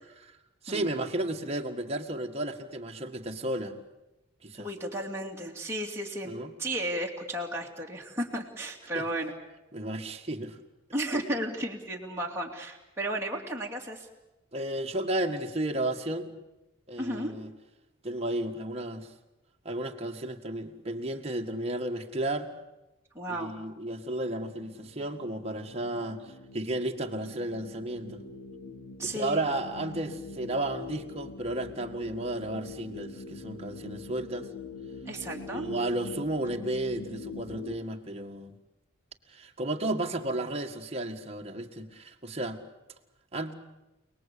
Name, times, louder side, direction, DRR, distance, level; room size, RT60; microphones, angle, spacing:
voice 1, 0.6-3.8 4.4-4.7 6.3-6.5 9.7-10.6 14.5-16.3 16.9-17.5 18.0-19.1 19.7-22.5 23.3-28.2 29.0-34.5 35.5-38.5 39.3-42.6 43.3-43.5, right 1 dB, 30° right, 3 dB, 1.8 m, -33 dB
voice 2, 4.6-6.3 6.6-9.3 10.9-14.1 17.0-17.3 23.1-23.5 29.0-29.4 35.1-35.7, right 1 dB, 15° right, -2 dB, 2.8 m, -34 dB
sound 1, 24.4-37.8, left 3 dB, 70° left, 2.1 m, -44 dB
29.0 x 19.5 x 8.6 m, 0.98 s
head